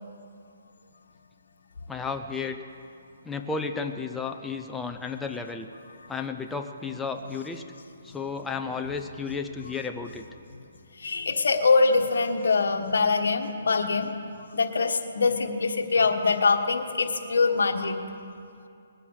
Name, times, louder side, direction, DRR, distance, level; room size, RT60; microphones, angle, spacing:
voice 1, 1.9-2.6 3.2-5.7 6.1-7.6 8.0-10.2, left 5 dB, 5° left, 4 dB, 0.6 m, -33 dB
voice 2, 11.0-14.1 14.5-18.0, left 4 dB, 80° left, 4 dB, 1.4 m, -23 dB
20.5 x 9.1 x 6.5 m, 2.5 s
hypercardioid pair, 155°, 0 cm